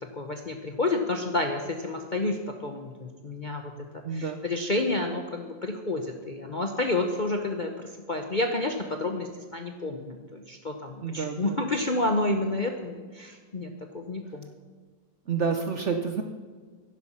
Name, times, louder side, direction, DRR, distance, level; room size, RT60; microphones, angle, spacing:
voice 1, 0.0-3.7 4.1-14.5, left 2 dB, 40° left, 3 dB, 0.7 m, -30 dB
voice 2, 4.0-4.4 11.0-11.6 15.3-16.2, right 5 dB, 55° right, 6 dB, 0.8 m, -29 dB
11.0 x 10.5 x 5.6 m, 1.5 s
omnidirectional pair, 1.9 m